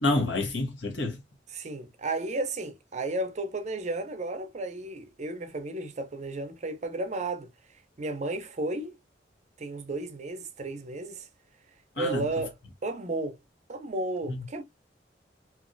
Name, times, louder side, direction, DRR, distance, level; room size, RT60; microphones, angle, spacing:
voice 1, 0.0-1.2 12.0-12.2 14.3-14.4, left 2 dB, 75° left, 1.0 m, -28 dB
voice 2, 1.5-7.5 8.0-9.0 9.6-11.3 12.0-12.6 12.8-13.4 13.7-14.6, right 2 dB, 40° right, 0.5 m, -33 dB
3.0 x 2.4 x 2.5 m
head